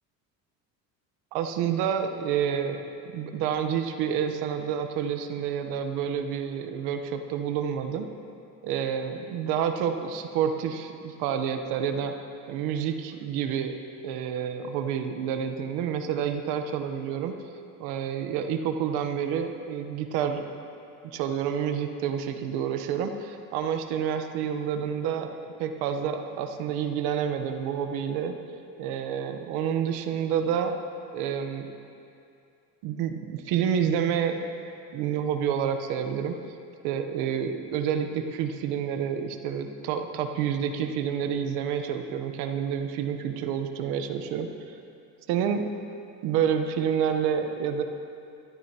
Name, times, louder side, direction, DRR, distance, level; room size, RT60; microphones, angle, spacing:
voice 1, 1.3-2.8 3.1-8.1 8.6-12.1 12.5-13.8 14.0-17.4 17.8-20.4 21.0-28.4 28.8-30.8 31.1-31.7 32.8-34.4 34.9-36.3 36.8-44.8 45.3-45.6 46.2-47.8, right 8 dB, 85° right, 6 dB, 1.0 m, -28 dB
22.5 x 13.0 x 2.9 m, 2.6 s
cardioid pair, 160°, 38 cm